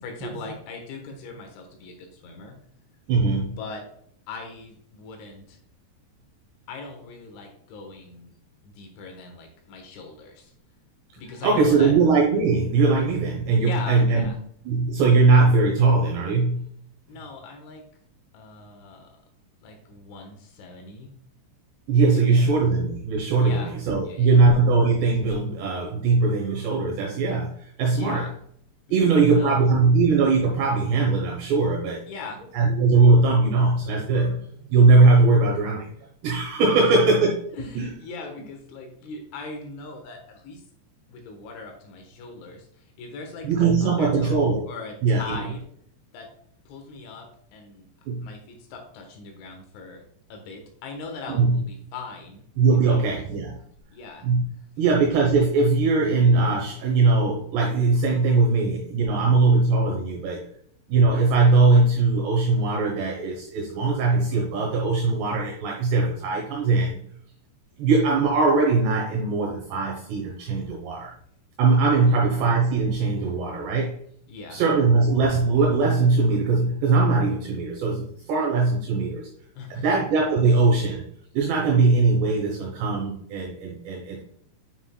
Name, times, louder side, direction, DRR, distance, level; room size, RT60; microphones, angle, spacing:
voice 1, 0.0-2.6 3.4-3.8 4.3-5.6 6.7-8.3 8.6-10.5 11.2-11.9 13.6-14.4 17.1-17.8 18.3-19.1 19.6-21.1 22.1-22.5 23.4-23.8 24.0-24.4 27.9-28.4 28.9-29.7 32.1-32.4 36.8-37.0 37.5-40.6 41.1-45.6 46.1-46.3 46.7-47.9 48.2-52.5 52.9-53.1 53.9-54.3 72.0-72.1 74.3-74.6 79.6-79.9, left 4 dB, 75° left, 3 dB, 3.6 m, -40 dB
voice 2, 3.1-3.6 11.4-14.3 14.7-16.6 21.9-23.6 23.9-28.2 28.9-32.0 32.5-35.9 36.2-37.4 37.8-37.9 43.4-44.6 45.0-45.5 48.1-48.3 51.3-51.6 52.6-53.6 54.2-54.4 54.8-60.4 60.9-67.0 67.8-71.1 71.6-74.0 74.5-79.3 79.7-81.0 81.3-84.2, right 3 dB, 70° right, -1 dB, 3.0 m, -20 dB
9.4 x 5.9 x 2.2 m, 0.65 s
omnidirectional pair, 5.5 m